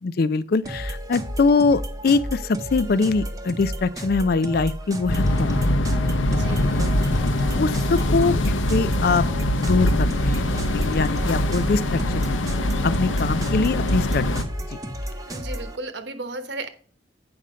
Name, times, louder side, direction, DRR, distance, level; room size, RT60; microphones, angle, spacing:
voice 1, 0.0-5.6 7.6-9.3 9.6-10.4 10.7-12.5 12.8-14.8, left 4 dB, 50° left, 0.4 m, -23 dB
sound 1, 0.6-15.8, equal, 20° right, 0.8 m, -33 dB
sound 2, 5.1-14.4, left 1 dB, 85° left, 0.8 m, -23 dB
voice 2, 6.3-7.0 15.3-16.7, right 2 dB, 65° right, 1.2 m, -34 dB
8.8 x 5.6 x 5.0 m
head